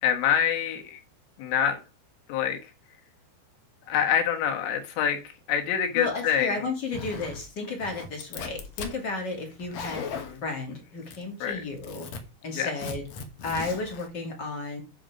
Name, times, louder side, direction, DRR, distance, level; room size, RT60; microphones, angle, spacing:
voice 1, 0.0-1.0 1.4-1.8 2.3-2.6 3.9-5.2 5.5-6.6 10.2-10.4 11.4-11.6 12.6-12.7, left 8 dB, 90° left, 4 dB, 3.7 m, -25 dB
voice 2, 5.9-12.1 12.4-13.0 13.4-14.8, left 3 dB, 30° left, 1 dB, 2.4 m, -33 dB
Zipper (clothing), 6.9-7.4 7.8-9.0 9.5-10.4 11.1-11.5 11.7-12.2 12.8-14.1, left 5 dB, 65° left, 1.7 m, -38 dB
9.7 x 5.3 x 5.0 m, 0.30 s
omnidirectional pair, 4.9 m